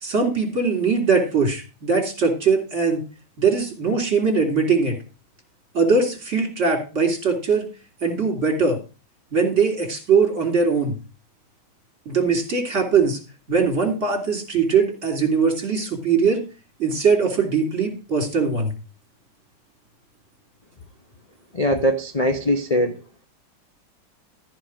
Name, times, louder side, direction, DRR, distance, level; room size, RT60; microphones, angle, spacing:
voice 1, 0.0-3.0 3.4-5.0 5.7-7.6 8.0-8.8 9.3-11.0 12.0-13.2 13.5-16.4 16.8-18.7, right 5 dB, 35° right, 3.5 m, -21 dB
voice 2, 21.5-23.0, equal, 75° left, 0.3 m, -21 dB
14.0 x 4.9 x 6.2 m
omnidirectional pair, 2.2 m